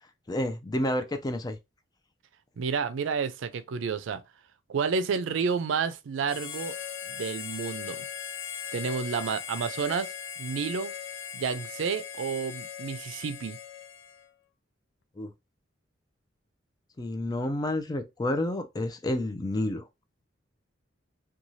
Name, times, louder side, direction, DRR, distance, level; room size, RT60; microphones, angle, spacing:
voice 1, 0.3-1.6 15.2-15.3 17.0-19.9, left 1 dB, 20° left, 0.4 m, -30 dB
voice 2, 2.6-4.2 4.7-6.8 7.1-8.1 8.7-10.1 10.4-10.9 11.3-13.6, right 5 dB, 85° right, 0.4 m, -30 dB
Harmonica, 6.2-14.3, left 8 dB, 85° left, 0.5 m, -39 dB
2.6 x 2.3 x 3.0 m
head